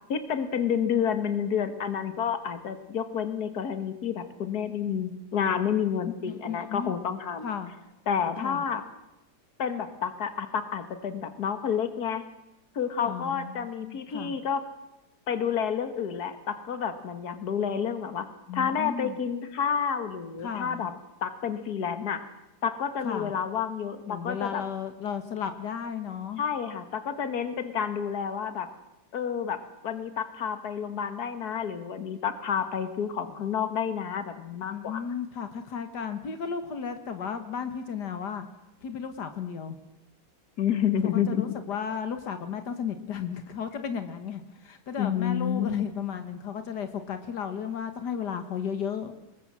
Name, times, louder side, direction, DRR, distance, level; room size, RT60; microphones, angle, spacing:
voice 1, 0.1-7.5 8.1-8.8 9.6-12.2 12.8-14.6 15.3-18.3 18.5-20.9 21.2-22.2 22.6-24.6 26.4-28.7 29.1-29.6 29.8-35.0 40.6-41.4 45.0-45.9, left 7 dB, 70° left, 10 dB, 2.1 m, -29 dB
voice 2, 6.3-6.9 7.4-7.7 8.4-8.6 13.0-14.4 18.5-19.2 20.4-20.9 23.0-23.3 24.1-26.4 34.7-38.5 38.8-39.8 41.1-49.1, left 7 dB, 85° left, 8 dB, 2.0 m, -34 dB
25.0 x 20.5 x 7.5 m, 0.92 s
omnidirectional pair, 1.7 m